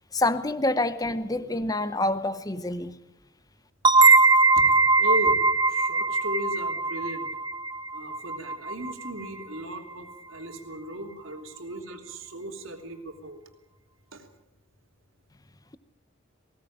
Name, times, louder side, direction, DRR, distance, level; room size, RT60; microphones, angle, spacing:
voice 1, 0.1-3.0, left 2 dB, 20° left, 13 dB, 0.9 m, -27 dB
sound 1, 3.8-9.3, right 3 dB, 20° right, 0.8 m, -21 dB
voice 2, 5.0-5.4 5.7-7.3 7.9-13.4 14.1-14.3, right 1 dB, 85° right, 4 dB, 3.2 m, -36 dB
20.0 x 17.5 x 8.8 m, 0.99 s
head